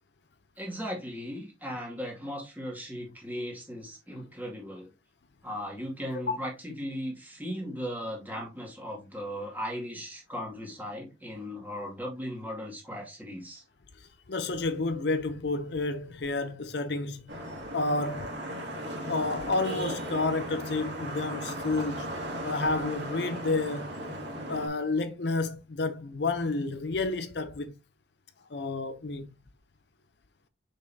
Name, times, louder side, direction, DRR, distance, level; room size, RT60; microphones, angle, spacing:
voice 1, 0.6-4.9 5.4-13.6, equal, 10° right, 2.2 m, -37 dB
voice 2, 14.0-17.3 17.7-18.3 19.1-22.1 22.4-23.9 24.5-27.7 28.5-29.3, left 3 dB, 60° left, 0.6 m, -30 dB
Vehicle horn car horn honking / Traffic noise roadway noise, 17.3-24.7, equal, 65° right, 2.4 m, -36 dB
6.6 x 5.4 x 2.7 m
head